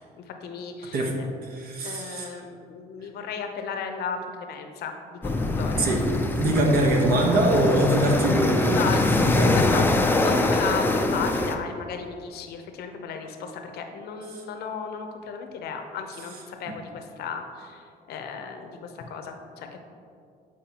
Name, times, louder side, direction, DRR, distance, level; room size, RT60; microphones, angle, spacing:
voice 1, 0.1-1.3 1.8-5.9 8.7-9.3 9.5-19.8, left 6 dB, 70° left, 5 dB, 0.8 m, -35 dB
voice 2, 1.5-2.4 5.8-6.0 6.4-8.8 9.3-9.6 14.3-14.4, right 1 dB, 60° right, 1 dB, 1.1 m, -23 dB
sound 1, 5.2-11.6, left 2 dB, 10° left, 0.4 m, -23 dB
8.6 x 4.8 x 2.9 m, 2.4 s
cardioid pair, 110°, 17 cm